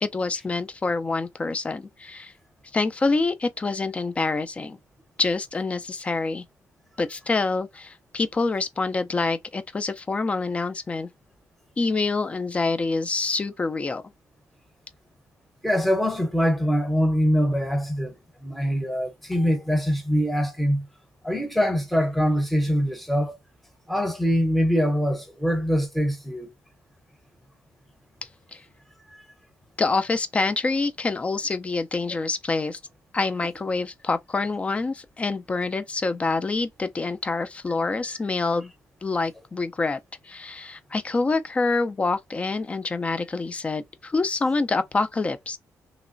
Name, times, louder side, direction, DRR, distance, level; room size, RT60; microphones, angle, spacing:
voice 1, 0.0-2.3 2.7-4.8 5.2-6.4 7.0-11.1 11.8-14.0 28.5-28.6 29.8-32.8 33.1-38.7 39.0-45.6, left 3 dB, 20° left, 0.4 m, -26 dB
voice 2, 15.6-20.9 21.2-23.4 23.9-26.5 29.1-29.2, equal, ahead, 0.8 m, -23 dB
3.2 x 3.0 x 2.5 m
cardioid pair, 145°, 6 cm